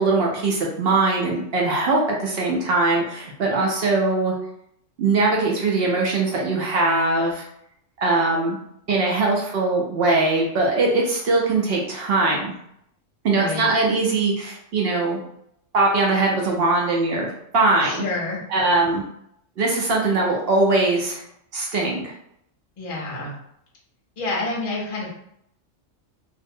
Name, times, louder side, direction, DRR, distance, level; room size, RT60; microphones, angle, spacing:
voice 1, 0.0-4.3 5.0-7.4 8.0-8.6 8.9-12.6 13.2-15.2 15.7-18.0 18.5-19.0 19.6-21.2 21.5-22.1, right 3 dB, 60° right, -1 dB, 0.7 m, -21 dB
voice 2, 13.3-13.7 17.8-18.7 22.8-23.4 24.2-25.2, left 3 dB, 35° left, -3 dB, 0.5 m, -29 dB
2.6 x 2.0 x 2.6 m, 0.74 s
omnidirectional pair, 1.3 m